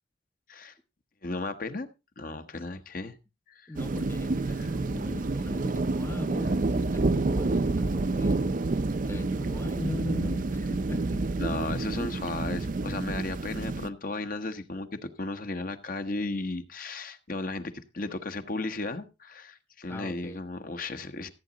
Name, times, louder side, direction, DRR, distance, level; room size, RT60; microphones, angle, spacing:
voice 1, 1.2-1.9 2.2-3.2 3.5-3.7 4.6-4.7 11.4-21.3, left 2 dB, 50° left, 1.2 m, -35 dB
voice 2, 3.7-8.6 9.0-11.3 19.9-20.4, left 1 dB, 15° left, 0.7 m, -39 dB
sound 1, 3.8-13.9, right 3 dB, 50° right, 0.5 m, -29 dB
14.5 x 8.5 x 4.0 m
head